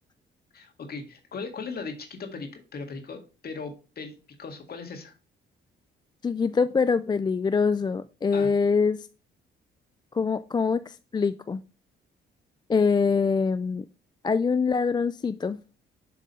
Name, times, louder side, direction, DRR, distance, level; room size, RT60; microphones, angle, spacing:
voice 1, 0.5-5.1 8.3-8.5, left 4 dB, 50° left, 5 dB, 2.0 m, -38 dB
voice 2, 6.2-9.1 10.1-11.6 12.7-13.8 14.2-15.6, left 5 dB, 20° left, 13 dB, 0.3 m, -24 dB
7.4 x 3.9 x 5.5 m, 0.33 s
cardioid pair, 90°, 20 cm